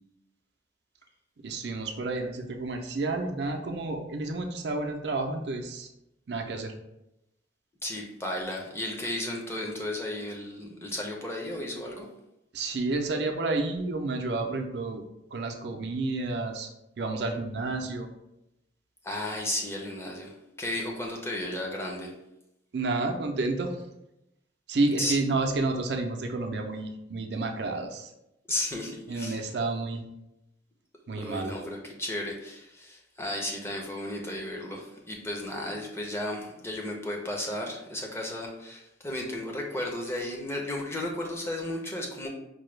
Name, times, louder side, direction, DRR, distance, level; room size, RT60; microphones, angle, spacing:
voice 1, 1.4-5.9 6.3-6.7 12.5-15.0 15.3-16.7 17.0-18.1 22.7-23.8 24.7-28.1 29.1-30.0 31.1-31.6, right 3 dB, 65° right, 3 dB, 0.5 m, -30 dB
voice 2, 7.8-12.1 19.0-22.1 25.0-25.2 28.5-29.5 31.2-42.3, left 1 dB, 15° left, 0 dB, 0.6 m, -34 dB
4.7 x 2.2 x 3.2 m, 0.85 s
head